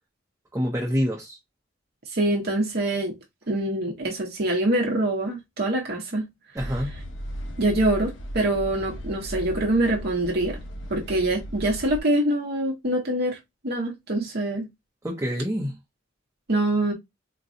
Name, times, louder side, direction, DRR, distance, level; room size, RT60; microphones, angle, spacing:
voice 1, 0.5-1.4 6.5-6.9 15.0-15.8, equal, 15° right, 0.7 m, -27 dB
voice 2, 2.1-3.2 3.5-6.3 7.6-10.6 10.9-13.4 13.6-14.7 16.5-16.9, right 1 dB, 55° right, 0.9 m, -24 dB
sound 1, 6.6-12.0, equal, 75° left, 0.8 m, -36 dB
3.9 x 2.2 x 2.5 m
head